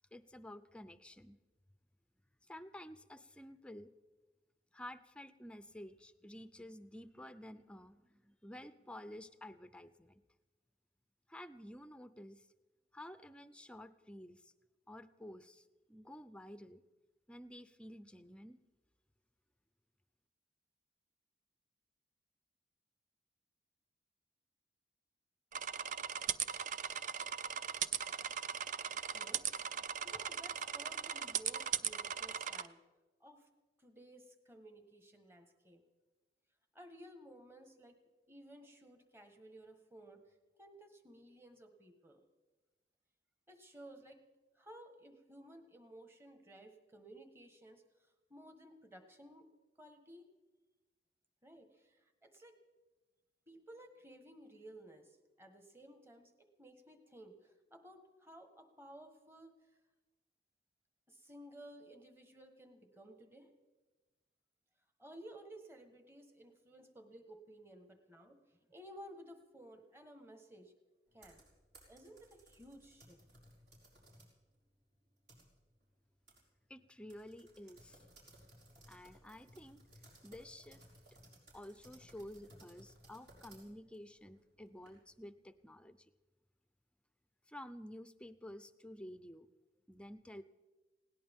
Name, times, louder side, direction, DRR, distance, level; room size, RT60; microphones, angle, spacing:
voice 1, 0.1-1.4 2.4-3.9 4.7-10.2 11.3-12.5 12.9-14.5 14.9-16.8 17.3-18.6 76.7-78.0 78.9-79.8 80.2-80.9 81.5-86.1 87.5-89.5 89.9-90.4, left 1 dB, 5° left, 12 dB, 0.5 m, -51 dB
sound 1, 25.5-32.7, right 8 dB, 45° right, 0.4 m, -39 dB
voice 2, 29.1-29.5 30.0-32.8 33.2-33.5 33.8-35.8 36.7-38.0 38.3-42.2 43.5-44.2 44.5-49.5 49.8-50.3 51.4-52.6 53.5-59.6 61.1-63.5 65.0-70.7 71.1-71.4 71.9-73.2, right 1 dB, 15° right, 6 dB, 1.3 m, -56 dB
sound 2, 71.1-74.4 74.8-75.8 76.3-76.4 76.7-76.8 77.1-85.2, right 1 dB, 65° right, 4.9 m, -61 dB
20.0 x 18.0 x 3.6 m, 1.2 s
head